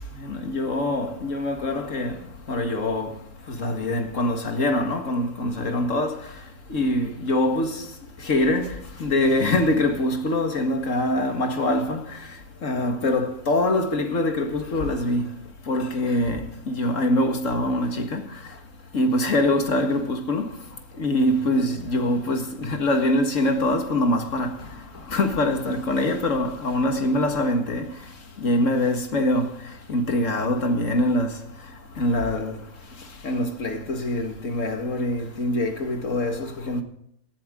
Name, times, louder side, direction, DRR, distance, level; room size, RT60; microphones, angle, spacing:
voice 1, 0.3-2.1 2.5-3.1 3.6-6.1 6.7-7.8 8.3-8.8 9.0-12.0 12.6-15.3 15.7-16.4 16.7-18.2 18.9-20.5 21.0-24.5 25.1-27.9 28.4-29.5 29.9-31.3 32.0-32.5 33.2-36.8, left 1 dB, 60° left, 2.2 m, -23 dB
18.0 x 12.5 x 3.8 m
omnidirectional pair, 1.5 m